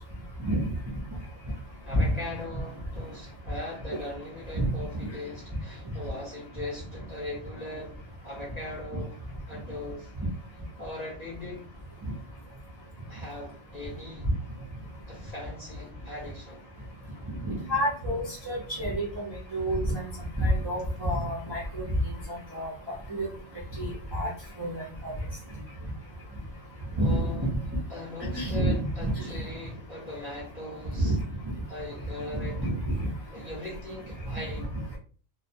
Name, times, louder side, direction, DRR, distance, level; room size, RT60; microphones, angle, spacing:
voice 1, 1.8-7.9 8.2-9.2 9.5-10.1 10.8-11.6 13.1-14.3 15.1-16.6 27.0-27.5 27.9-31.2 31.7-32.6 33.3-34.7, left 2 dB, 45° left, 0.6 m, -39 dB
voice 2, 17.4-20.1 20.4-21.8 22.3-23.3 23.8-24.3 24.6-25.1 27.0-27.3 28.2-28.8 29.0-29.4 31.0-31.2 32.3-32.7, right 1 dB, 35° right, 0.4 m, -28 dB
2.2 x 2.1 x 2.7 m
omnidirectional pair, 1.4 m